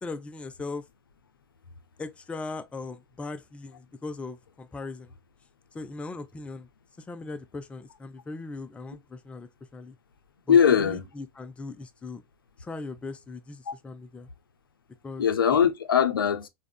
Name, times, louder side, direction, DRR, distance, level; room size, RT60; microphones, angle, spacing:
voice 1, 0.0-0.9 2.0-5.1 5.7-6.7 7.0-10.0 10.5-12.2 12.6-14.3 15.0-15.3, left 3 dB, 10° left, 0.3 m, -39 dB
voice 2, 10.5-11.0 13.7-13.8 15.2-16.5, left 7 dB, 90° left, 0.4 m, -21 dB
3.4 x 2.1 x 2.2 m
hypercardioid pair, 95°, 11 cm